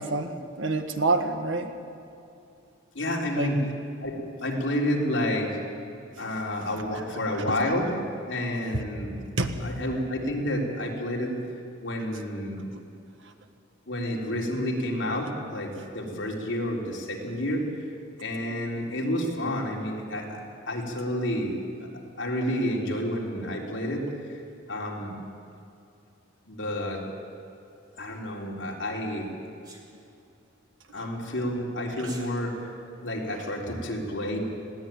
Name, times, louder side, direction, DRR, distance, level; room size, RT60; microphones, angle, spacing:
voice 1, 0.0-1.7 3.4-3.5 6.2-6.3 7.3-7.6 8.7-8.8 9.4-9.5 12.7-12.8 31.0-31.1 33.4-33.5, right 3 dB, 70° right, 6 dB, 1.6 m, -28 dB
voice 2, 2.9-3.6 4.0-5.6 6.2-7.9 8.3-9.1 9.6-11.4 11.8-12.6 13.9-17.8 18.2-20.4 20.7-21.5 21.8-21.9 22.2-24.1 24.7-25.1 26.5-27.0 28.0-29.3 30.9-32.5 33.0-34.4, left 1 dB, 65° left, -2 dB, 3.8 m, -29 dB
Sneeze, 29.6-29.9 31.9-32.3, right 2 dB, 20° right, 2.6 m, -45 dB
20.5 x 16.5 x 9.0 m, 2.6 s
head